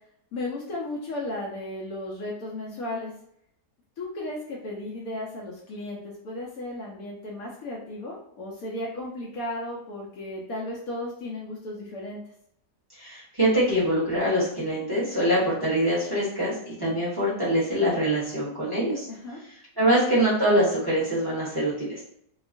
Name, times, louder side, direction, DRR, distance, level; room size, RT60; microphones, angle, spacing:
voice 1, 0.3-3.1 4.0-12.2 19.1-19.4, left 1 dB, 70° left, -3 dB, 1.0 m, -35 dB
voice 2, 12.9-19.1 19.8-21.9, right 1 dB, 15° right, -8 dB, 1.0 m, -24 dB
2.8 x 2.3 x 2.5 m, 0.71 s
omnidirectional pair, 1.7 m